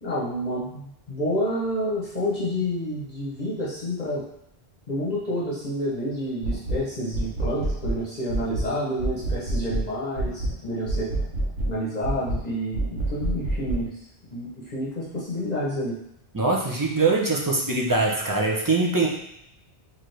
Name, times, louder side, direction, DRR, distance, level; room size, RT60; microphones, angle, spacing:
voice 1, 0.0-4.2 4.9-11.1 11.7-14.0 14.3-16.0, equal, 45° left, -7 dB, 0.9 m, -29 dB
sound 1, 6.4-6.8 7.1-8.0 8.3-8.7 9.0-9.9 10.2-10.6 10.9-11.7 12.0-12.4 12.7-13.8, right 2 dB, 90° right, 1.2 m, -27 dB
voice 2, 16.3-19.1, right 3 dB, 25° right, -3 dB, 0.5 m, -22 dB
4.3 x 2.8 x 3.2 m, 0.78 s
omnidirectional pair, 1.1 m